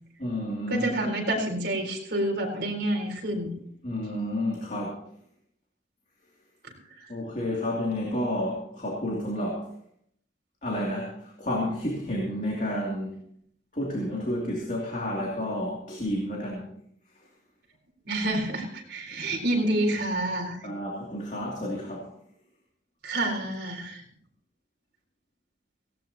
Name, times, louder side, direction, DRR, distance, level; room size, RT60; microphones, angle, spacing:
voice 1, 0.2-0.9 3.8-5.0 7.1-9.7 10.6-13.2 13.7-16.7 19.1-19.2 20.6-22.1, left 1 dB, 40° left, -2 dB, 2.8 m, -30 dB
voice 2, 0.7-3.5 18.1-20.6 23.0-24.0, right 1 dB, 60° right, 1 dB, 4.1 m, -28 dB
17.5 x 17.0 x 2.9 m, 0.67 s
head